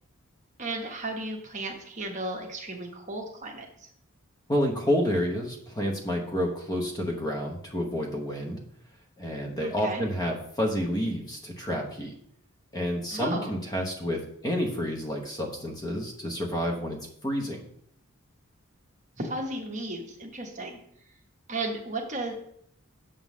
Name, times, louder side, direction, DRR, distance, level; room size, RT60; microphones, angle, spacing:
voice 1, 0.6-3.9 9.6-10.0 13.1-13.5 19.2-20.8 21.5-22.3, right 2 dB, 35° right, 2 dB, 1.1 m, -34 dB
voice 2, 4.5-8.6 9.2-12.1 12.7-17.6, equal, 20° left, 0 dB, 1.0 m, -29 dB
6.8 x 3.8 x 6.1 m, 0.68 s
head